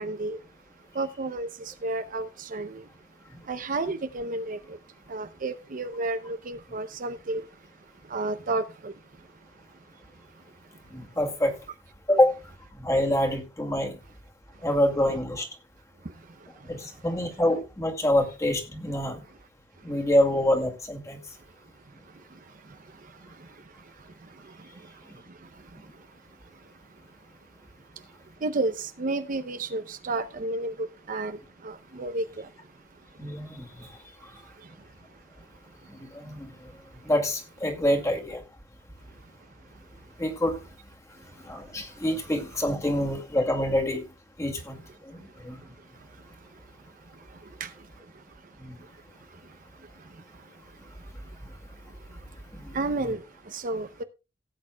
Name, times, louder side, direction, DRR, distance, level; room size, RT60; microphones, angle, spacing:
voice 1, 0.0-3.1 3.4-11.2 14.5-14.7 16.0-17.0 19.8-20.0 21.3-37.1 39.0-40.2 41.2-42.1 45.1-54.0, right 2 dB, 45° right, 0.6 m, -36 dB
voice 2, 10.9-11.5 12.1-12.4 12.8-14.0 14.6-15.5 16.6-19.2 19.8-21.2 33.2-33.9 35.9-36.7 37.0-38.4 40.2-40.6 41.5-44.0 44.4-44.8 45.1-45.6 48.6-48.8 52.5-52.7, left 1 dB, 15° left, 2.1 m, -26 dB
17.0 x 8.7 x 2.3 m
head